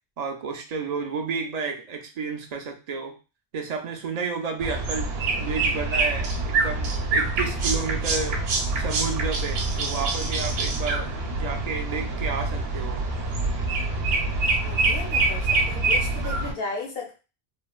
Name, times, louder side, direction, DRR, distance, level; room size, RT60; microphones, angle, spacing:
voice 1, 0.2-3.2 3.5-8.4 8.8-13.1, right 5 dB, 55° right, 3 dB, 0.5 m, -31 dB
sound 1, 4.6-16.5, right 3 dB, 75° right, 0.8 m, -25 dB
voice 2, 14.6-17.2, left 3 dB, 70° left, 0 dB, 1.0 m, -35 dB
3.1 x 2.2 x 2.3 m, 0.31 s
omnidirectional pair, 1.0 m